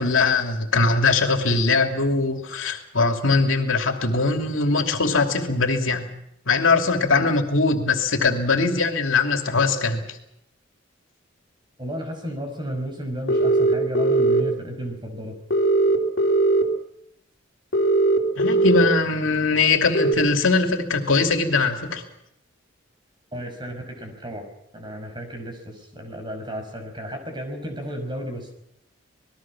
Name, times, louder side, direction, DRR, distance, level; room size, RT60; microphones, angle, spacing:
voice 1, 0.0-6.1 6.5-10.0 18.4-22.0, left 3 dB, 85° left, 4 dB, 2.8 m, -21 dB
voice 2, 11.8-15.4 23.3-24.5 24.7-28.5, right 1 dB, 25° right, 5 dB, 5.7 m, -33 dB
sound 1, 13.3-14.4 15.5-16.6 17.7-18.9 19.9-20.1, right 2 dB, 60° left, 3.5 m, -19 dB
27.0 x 20.5 x 6.2 m, 0.76 s
head